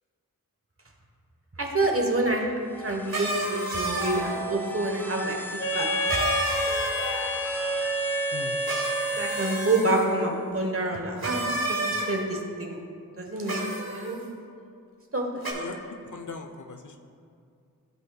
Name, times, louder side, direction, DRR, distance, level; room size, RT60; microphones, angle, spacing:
voice 1, 1.6-6.2 9.1-11.4 11.7-12.8 13.2-13.6 13.9-14.2 15.1-15.6, right 2 dB, 40° right, 2 dB, 1.1 m, -28 dB
sound 1, 2.6-10.3, right 1 dB, 5° left, 0.8 m, -37 dB
sound 2, 3.1-4.4 6.1-7.3 8.6-10.1 11.2-12.1 13.4-14.1 15.4-15.5, right 2 dB, 90° right, 1.4 m, -31 dB
Wind instrument woodwind instrument, 5.6-10.0, equal, 35° left, 1.6 m, -29 dB
voice 2, 15.5-17.0, left 4 dB, 55° left, 5 dB, 0.6 m, -39 dB
14.5 x 5.3 x 2.3 m, 2.4 s
wide cardioid pair, 65°, 35 cm